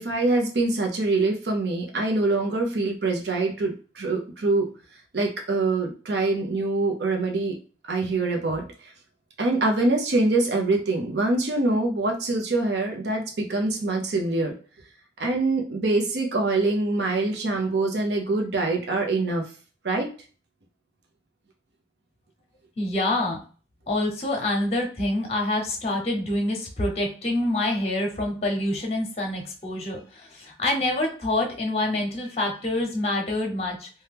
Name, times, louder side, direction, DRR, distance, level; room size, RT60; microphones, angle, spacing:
voice 1, 0.0-4.7 5.1-7.6 7.8-8.9 9.4-14.5 15.2-19.5 19.8-20.1, right 2 dB, 75° right, 1 dB, 0.6 m, -24 dB
voice 2, 22.8-23.4 23.9-33.9, left 1 dB, 35° left, 2 dB, 0.8 m, -26 dB
2.8 x 2.2 x 3.4 m, 0.39 s
head